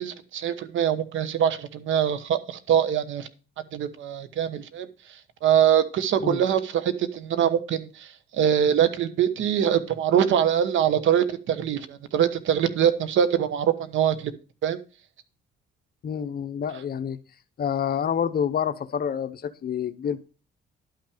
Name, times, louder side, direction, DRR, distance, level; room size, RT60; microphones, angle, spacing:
voice 1, 0.0-3.3 3.7-4.9 5.4-14.3 14.6-14.8, right 9 dB, 80° right, 13 dB, 1.2 m, -23 dB
voice 2, 16.0-17.2 17.6-20.3, left 8 dB, 50° left, 11 dB, 0.8 m, -28 dB
11.5 x 5.9 x 5.0 m, 0.33 s
cardioid pair, 90°, 20 cm